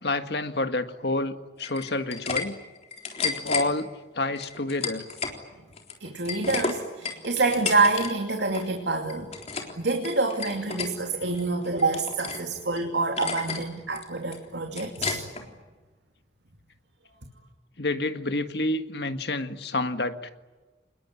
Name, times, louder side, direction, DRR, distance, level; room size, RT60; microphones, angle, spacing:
voice 1, 0.0-2.6 3.2-5.1 17.8-20.3, left 2 dB, 70° left, 8 dB, 1.8 m, -29 dB
sound 1, 1.6-2.4 2.8-3.7 4.4-5.4 5.7-8.1 8.4-8.7 9.1-9.7 10.0-10.9 11.3-12.4 12.8-12.9 13.2-13.6 14.0-15.4, left 5 dB, 35° left, 3.8 m, -32 dB
voice 2, 6.0-9.3 9.8-15.2, right 3 dB, 80° right, 3 dB, 2.6 m, -27 dB
27.5 x 21.0 x 9.8 m, 1.2 s
head